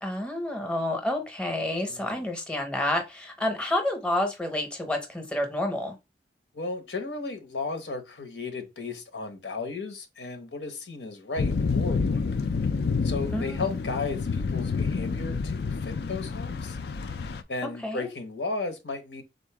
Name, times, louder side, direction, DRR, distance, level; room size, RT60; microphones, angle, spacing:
voice 1, 0.0-6.0 13.3-13.7 17.8-18.1, left 1 dB, 5° left, 0.8 m, -29 dB
voice 2, 1.9-2.3 6.5-12.2 13.0-16.8 17.5-19.2, left 3 dB, 85° left, 1.0 m, -35 dB
sound 1, 11.4-17.4, left 4 dB, 65° left, 0.4 m, -28 dB
3.8 x 2.6 x 4.7 m
head